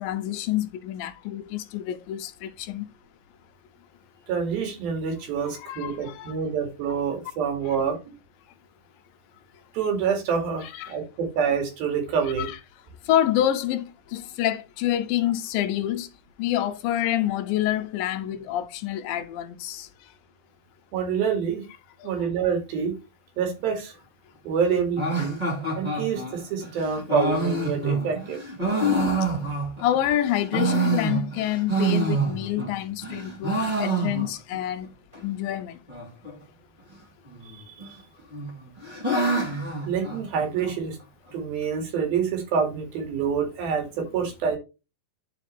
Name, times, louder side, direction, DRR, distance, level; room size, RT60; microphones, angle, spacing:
voice 1, 0.0-2.9 5.4-6.4 7.7-7.8 10.6-11.0 12.4-12.6 13.1-16.1 16.4-19.9 22.0-22.3 29.8-34.9 35.2-35.8, left 12 dB, 85° left, 2.4 m, -27 dB
voice 2, 4.3-8.0 9.7-12.5 20.9-21.6 22.0-22.9 23.4-23.9 24.5-25.4 25.8-28.4 37.8-37.9 39.5-41.0 41.3-44.6, right 6 dB, 80° right, 3.9 m, -27 dB
sound 1, 25.0-30.0 30.3-32.7 33.0-34.6 34.8-34.9 35.1-35.2 35.9-36.3 37.3-37.9 38.3-40.7, right 2 dB, 15° right, 2.0 m, -27 dB
10.0 x 5.1 x 3.2 m
omnidirectional pair, 4.2 m